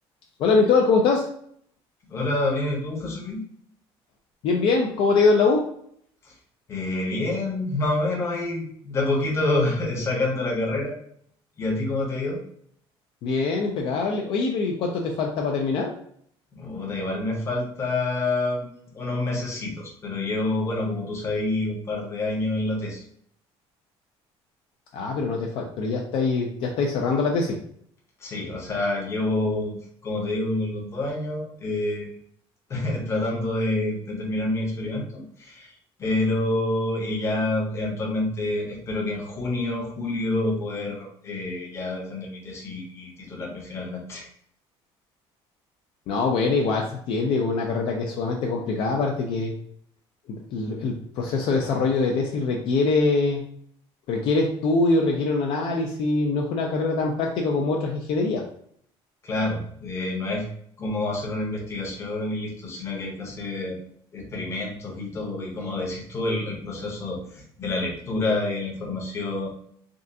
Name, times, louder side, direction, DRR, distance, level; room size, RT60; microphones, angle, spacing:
voice 1, 0.4-1.3 4.4-5.6 13.2-15.9 24.9-27.6 46.1-49.5 50.5-53.4 54.1-58.4, left 3 dB, 55° left, 1 dB, 0.5 m, -23 dB
voice 2, 2.1-3.4 6.2-6.3 6.7-10.9 11.6-12.4 16.6-18.7 18.9-23.0 28.2-32.1 32.7-44.3 59.2-60.5 60.8-63.8 64.1-69.5, left 2 dB, 25° left, -1 dB, 0.8 m, -28 dB
3.6 x 2.4 x 2.6 m, 0.64 s
cardioid pair, 175°, 11 cm